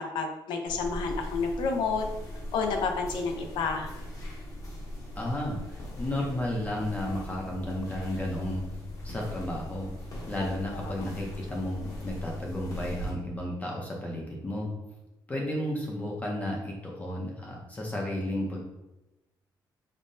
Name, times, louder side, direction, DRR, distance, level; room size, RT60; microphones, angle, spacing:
voice 1, 0.0-2.1 2.5-3.9 10.9-11.0, left 4 dB, 90° left, 4 dB, 0.5 m, -30 dB
sound 1, 0.7-13.1, left 1 dB, 45° left, 0.8 m, -39 dB
voice 2, 5.2-8.6 9.0-9.9 10.3-14.7 15.3-18.6, left 1 dB, 20° left, -2 dB, 0.5 m, -33 dB
5.3 x 2.0 x 2.6 m, 0.98 s
cardioid pair, 155°, 8 cm